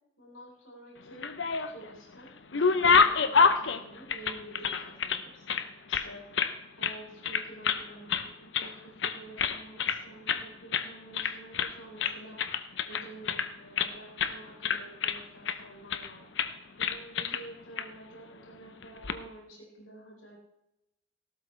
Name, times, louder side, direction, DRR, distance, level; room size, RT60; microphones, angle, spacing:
voice 1, 0.2-1.3 1.7-12.4 12.8-20.4, right 1 dB, 85° left, -2 dB, 4.3 m, -49 dB
sound 1, 1.1-1.9 2.3-5.2 5.5-6.5 6.8-7.0 7.2-7.8 8.1-8.7 9.0-10.0 10.3-10.4 10.7-10.9 11.1-11.7 12.0-13.9 14.2-14.4 14.6-15.6 15.9-16.1 16.4-16.5 16.8-17.4 17.8-17.9 18.8-19.2, left 5 dB, 60° left, 0.8 m, -27 dB
18.0 x 12.5 x 3.3 m, 0.87 s
head